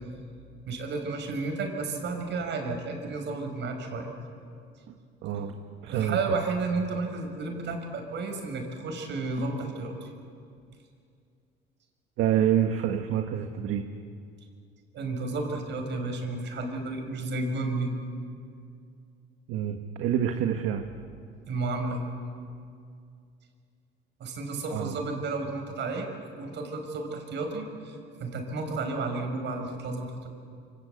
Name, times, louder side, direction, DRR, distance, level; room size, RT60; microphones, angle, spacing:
voice 1, 0.7-4.1 5.9-10.1 14.9-17.9 21.5-22.0 24.2-26.1 26.4-30.3, right 3 dB, 60° right, 4 dB, 6.2 m, -32 dB
voice 2, 5.2-5.5 5.8-6.2 12.2-13.8 19.5-20.8 24.7-25.0, right 10 dB, 75° right, 5 dB, 1.6 m, -27 dB
28.0 x 25.0 x 8.3 m, 2.3 s
cardioid pair, 95°, 21 cm